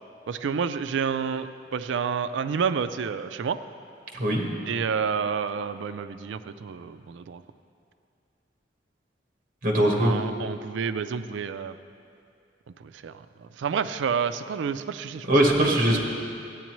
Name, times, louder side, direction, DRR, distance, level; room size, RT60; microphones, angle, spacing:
voice 1, 0.3-3.6 4.7-7.4 10.0-11.8 12.8-15.3, right 6 dB, 90° right, 12 dB, 0.4 m, -29 dB
voice 2, 4.1-4.5 9.6-10.1 15.3-16.0, right 1 dB, 50° right, 0 dB, 1.3 m, -21 dB
14.0 x 9.2 x 3.0 m, 2.4 s
head